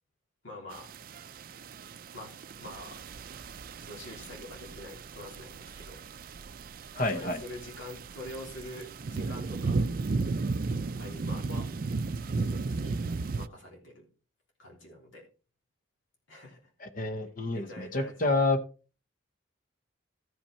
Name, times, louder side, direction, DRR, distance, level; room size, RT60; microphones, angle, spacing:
voice 1, 0.4-0.9 2.1-3.0 3.8-6.0 7.0-9.9 11.0-11.7 12.3-13.0 13.3-14.0 14.6-15.3 16.3-16.7 17.5-18.3, left 1 dB, 75° left, -2 dB, 3.2 m, -45 dB
sound 1, 0.7-13.5, right 3 dB, 45° right, 0.4 m, -35 dB
voice 2, 7.0-7.4 16.8-18.6, left 2 dB, 40° left, 9 dB, 0.9 m, -28 dB
13.5 x 5.9 x 4.3 m, 0.35 s
head